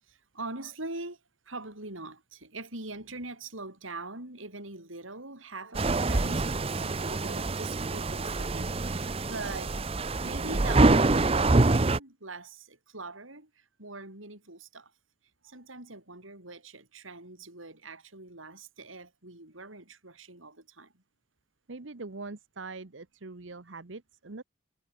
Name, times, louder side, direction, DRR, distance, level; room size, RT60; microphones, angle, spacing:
voice 1, 0.0-9.8 10.2-14.9 15.4-21.0, right 2 dB, 90° right, 7.9 m, -43 dB
sound 1, 5.7-12.0, right 2 dB, 30° right, 0.7 m, -25 dB
voice 2, 21.7-24.4, right 3 dB, 70° right, 1.1 m, -42 dB
head